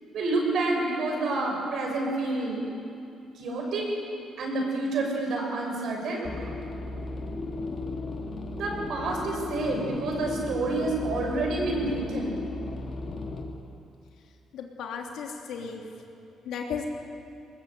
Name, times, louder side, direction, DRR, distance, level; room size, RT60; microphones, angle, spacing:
voice 1, 0.1-2.7 3.3-3.9 4.4-6.3 8.5-12.4, right 2 dB, 70° right, 0 dB, 6.8 m, -28 dB
sound 1, 6.3-13.4, left 2 dB, 50° left, 3.5 m, -35 dB
voice 2, 14.5-15.8 16.4-16.8, left 6 dB, 85° left, 1 dB, 3.1 m, -35 dB
21.0 x 20.5 x 8.4 m, 2.6 s
cardioid pair, 90°, 0 cm